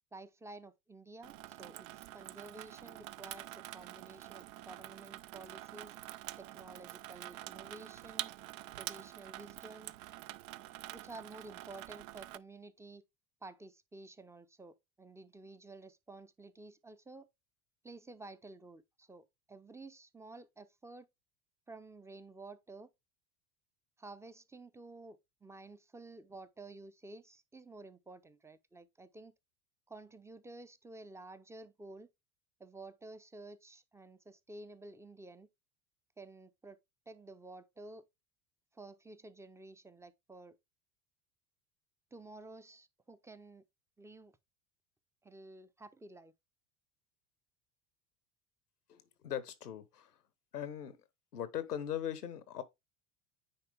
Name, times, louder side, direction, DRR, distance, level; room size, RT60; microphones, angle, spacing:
voice 1, 0.1-5.9 6.4-8.3 8.7-9.9 10.9-13.0 13.4-17.3 17.8-21.1 21.7-22.9 24.0-29.3 29.9-32.1 32.6-35.5 36.2-36.8 37.1-38.0 38.7-40.6 42.1-43.6 44.0-44.3 45.2-46.3, right 2 dB, 5° right, 0.5 m, -52 dB
Water tap faucet / Sink (filling or washing), 1.2-12.4, right 16 dB, 60° right, 0.5 m, -47 dB
voice 2, 48.9-50.2 50.5-51.0 51.3-52.6, left 10 dB, 90° left, 1.0 m, -40 dB
9.6 x 4.4 x 3.4 m
hypercardioid pair, 75°, 46 cm